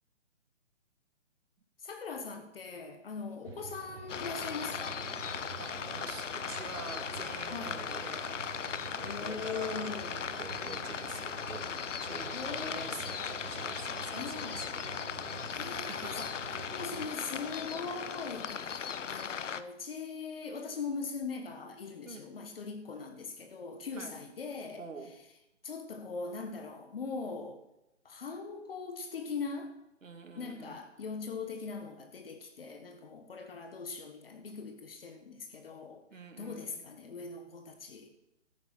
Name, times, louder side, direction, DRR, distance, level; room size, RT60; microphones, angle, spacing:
voice 1, 1.8-5.1 7.5-7.8 9.0-10.3 12.3-13.0 14.1-14.7 15.5-16.2 16.5-24.8 25.6-27.6 28.0-29.8 30.3-36.0 36.4-38.1, left 4 dB, 50° left, 6 dB, 1.6 m, -41 dB
sound 1, 3.4-17.1, right 6 dB, 50° right, 1.0 m, -48 dB
sound 2, 4.1-19.6, left 7 dB, 75° left, 1.0 m, -38 dB
voice 2, 5.6-9.9 10.4-11.7 12.0-14.6 15.7-16.3 17.0-17.2 22.0-22.2 23.9-24.1 24.8-25.1 30.0-30.8 36.1-36.8, right 4 dB, 90° right, 6 dB, 2.5 m, -46 dB
13.5 x 9.2 x 5.9 m, 0.89 s
hypercardioid pair, 165°, 37 cm